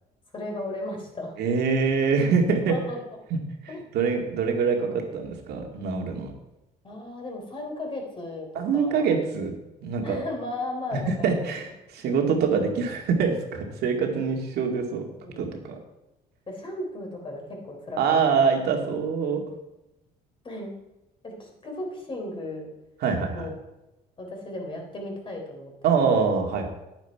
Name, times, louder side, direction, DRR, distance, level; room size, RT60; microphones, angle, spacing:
voice 1, 0.3-1.3 2.7-3.0 3.7-3.9 4.8-5.0 6.8-9.1 10.0-11.5 15.2-15.4 16.5-18.0 20.4-20.7 21.2-22.7 23.3-23.5 24.2-25.7 26.1-26.2, left 1 dB, 30° left, 1 dB, 3.4 m, -35 dB
voice 2, 1.4-2.8 3.3-3.4 3.6-6.3 8.5-10.2 11.1-15.0 15.4-15.8 18.0-19.4 23.0-23.5 25.8-26.7, right 5 dB, 70° right, 2 dB, 2.2 m, -24 dB
10.5 x 9.4 x 4.6 m, 0.94 s
cardioid pair, 110°, 17 cm